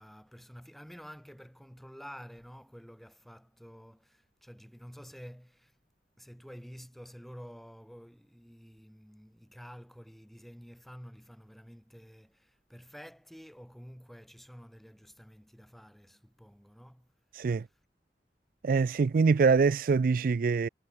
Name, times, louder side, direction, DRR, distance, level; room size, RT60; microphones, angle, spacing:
voice 1, 0.0-5.8 6.2-17.1 17.4-17.6, equal, ahead, 2.9 m, -50 dB
voice 2, 17.3-17.7 18.6-20.7, right 5 dB, 50° right, 0.3 m, -24 dB
head